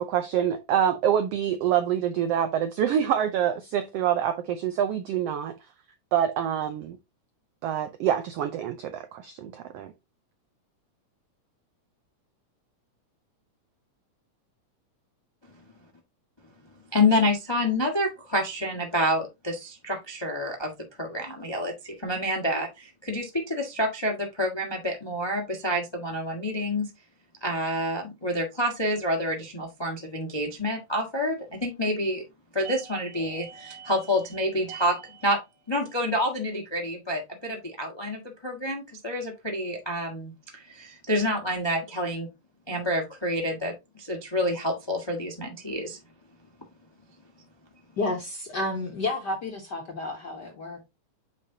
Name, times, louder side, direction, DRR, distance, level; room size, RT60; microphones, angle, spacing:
voice 1, 0.0-5.6 6.1-7.0 7.6-9.9, right 9 dB, 90° right, 1.3 m, -26 dB
voice 2, 16.9-20.7 21.0-26.9 27.4-32.2 32.5-35.4 35.7-42.3 42.7-46.0, left 1 dB, 40° left, 0.3 m, -28 dB
voice 3, 48.0-50.9, left 2 dB, 60° left, 1.1 m, -31 dB
8.5 x 5.0 x 2.8 m
omnidirectional pair, 3.6 m